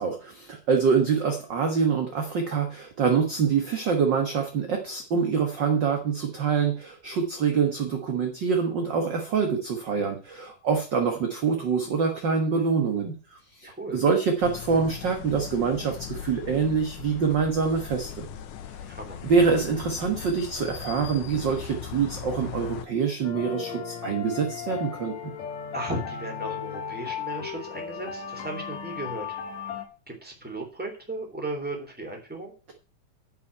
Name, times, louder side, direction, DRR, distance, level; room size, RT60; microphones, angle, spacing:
voice 1, 0.0-18.2 19.2-25.1, right 5 dB, 45° right, 3 dB, 1.7 m, -25 dB
voice 2, 13.7-14.0 18.9-19.2 25.7-29.4 30.1-32.5, right 2 dB, 5° right, 1 dB, 2.9 m, -35 dB
sound 1, 14.4-22.9, left 9 dB, 80° left, 2.4 m, -39 dB
sound 2, 23.2-29.9, left 8 dB, 65° left, 2.8 m, -36 dB
10.0 x 5.8 x 8.2 m, 0.37 s
omnidirectional pair, 3.5 m